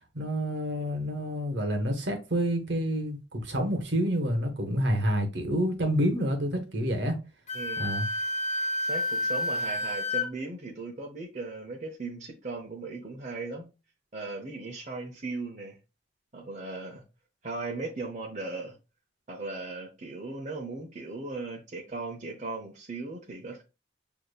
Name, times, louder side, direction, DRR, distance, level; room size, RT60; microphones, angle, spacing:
voice 1, 0.1-7.2 7.8-8.1, equal, 60° right, 1.0 m, -28 dB
Wind instrument woodwind instrument, 7.5-10.3, left 1 dB, 35° left, 0.5 m, -30 dB
voice 2, 7.5-7.9 8.8-13.7 14.1-15.8 16.3-17.0 17.4-18.8 19.3-23.6, right 3 dB, 40° right, 0.7 m, -37 dB
6.5 x 2.8 x 2.3 m
head